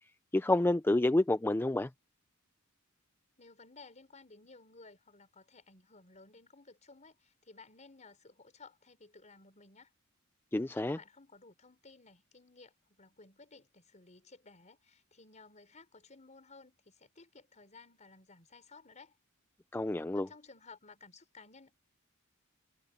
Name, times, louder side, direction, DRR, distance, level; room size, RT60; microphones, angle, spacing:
voice 1, 0.3-1.9 10.5-11.0 19.7-20.3, left 2 dB, 10° left, 0.4 m, -28 dB
voice 2, 3.4-9.9 10.7-19.2 19.8-21.7, left 3 dB, 35° left, 5.0 m, -57 dB
head